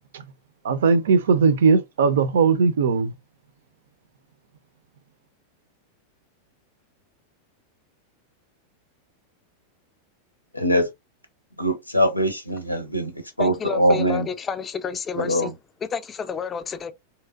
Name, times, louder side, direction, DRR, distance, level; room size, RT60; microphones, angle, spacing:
voice 1, 0.6-3.1, right 5 dB, 60° right, 0.4 m, -19 dB
voice 2, 10.5-10.9 11.6-14.3 15.2-15.5, equal, 90° left, 0.6 m, -22 dB
voice 3, 13.4-15.5 15.8-16.9, left 6 dB, 20° left, 0.4 m, -30 dB
3.1 x 2.8 x 2.3 m
figure-of-eight pair, 90°, 0 cm